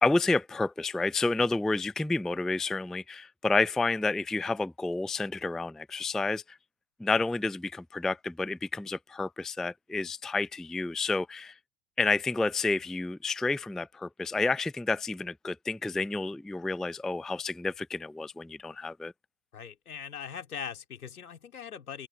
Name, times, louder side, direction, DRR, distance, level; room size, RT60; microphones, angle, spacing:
voice 1, 0.0-6.6 7.0-11.5 12.0-19.1, left 3 dB, ahead, 0.5 m, -30 dB
voice 2, 19.5-22.1, left 7 dB, 75° left, 3.4 m, -40 dB
open air
figure-of-eight pair, 85°, 45 cm